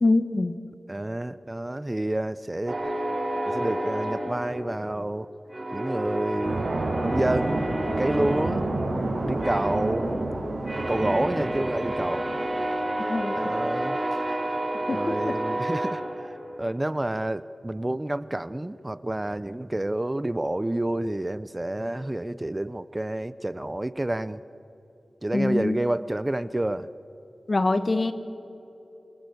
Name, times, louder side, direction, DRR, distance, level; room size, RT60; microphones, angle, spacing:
voice 1, 0.0-0.6 13.0-13.6 14.9-15.4 25.3-25.8 27.5-28.1, left 2 dB, 50° left, 10 dB, 1.5 m, -24 dB
voice 2, 0.9-2.9 3.5-5.3 5.7-6.6 7.0-7.7 8.0-8.7 9.2-10.2 10.9-12.3 13.4-14.0 14.9-16.0 16.6-24.4 25.2-26.9, right 1 dB, 20° right, 15 dB, 0.6 m, -29 dB
sound 1, 2.7-5.1 5.5-16.7, right 1 dB, 40° right, 4.6 m, -30 dB
sound 2, 6.4-12.8, right 2 dB, 75° right, 5.6 m, -30 dB
28.0 x 25.0 x 8.0 m, 2.9 s
wide cardioid pair, 70°, 0 cm